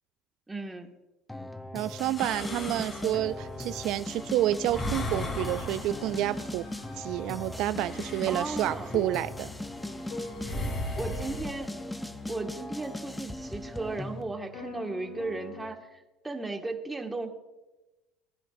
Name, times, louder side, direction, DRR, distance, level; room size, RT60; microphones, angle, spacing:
voice 1, 0.5-0.9 8.3-9.0 11.0-11.7 12.3-17.3, right 2 dB, 15° right, 3 dB, 1.8 m, -36 dB
sound 1, 1.3-14.2, left 1 dB, 10° left, 0.8 m, -39 dB
voice 2, 1.7-6.7 6.9-9.5, right 14 dB, 70° right, 13 dB, 0.3 m, -29 dB
sound 2, 2.2-11.5, left 2 dB, 35° left, 3.5 m, -39 dB
sound 3, 2.4-15.7, left 3 dB, 65° left, 5.0 m, -46 dB
20.5 x 11.0 x 2.6 m, 1.1 s
supercardioid pair, 85°, 0 cm